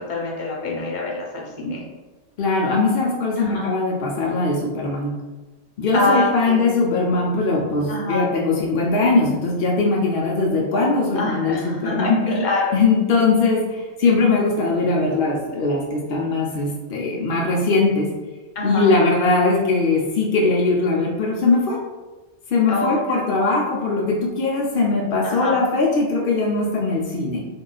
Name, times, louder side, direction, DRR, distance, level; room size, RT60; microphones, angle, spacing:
voice 1, 0.1-1.8 3.4-3.7 5.9-6.6 7.9-8.2 11.1-12.8 18.5-18.9 22.7-23.2 25.2-25.6, left 2 dB, 45° left, -3 dB, 0.7 m, -25 dB
voice 2, 2.4-5.1 5.8-12.2 12.7-18.1 18.6-21.8 22.5-27.4, left 3 dB, 80° left, -1 dB, 0.4 m, -20 dB
2.7 x 2.3 x 3.8 m, 1.2 s
omnidirectional pair, 1.5 m